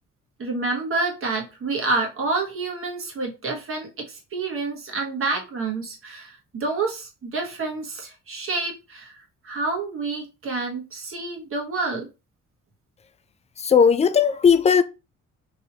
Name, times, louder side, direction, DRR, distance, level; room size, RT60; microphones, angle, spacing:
voice 1, 0.4-9.1 9.4-12.1, right 3 dB, 45° right, 1.3 m, -28 dB
voice 2, 13.6-14.8, left 6 dB, 20° left, 0.3 m, -17 dB
3.1 x 2.7 x 2.9 m
cardioid pair, 90°, 30 cm